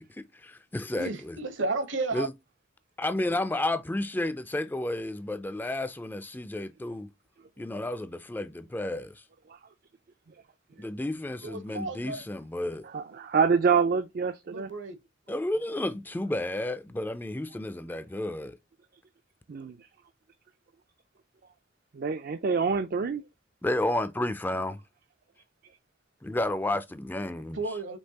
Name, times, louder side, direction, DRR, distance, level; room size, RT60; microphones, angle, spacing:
voice 1, 0.0-1.4 2.1-2.3 3.0-7.1 7.6-9.2 10.8-12.9 15.3-18.6 23.6-24.7 26.2-27.6, left 1 dB, 10° left, 0.3 m, -31 dB
voice 2, 1.0-2.3 11.4-12.2 14.5-15.0 27.5-28.0, right 3 dB, 75° right, 1.1 m, -32 dB
voice 3, 12.9-14.7 19.5-19.8 21.9-23.2, right 5 dB, 50° right, 0.4 m, -26 dB
5.3 x 3.2 x 2.8 m
head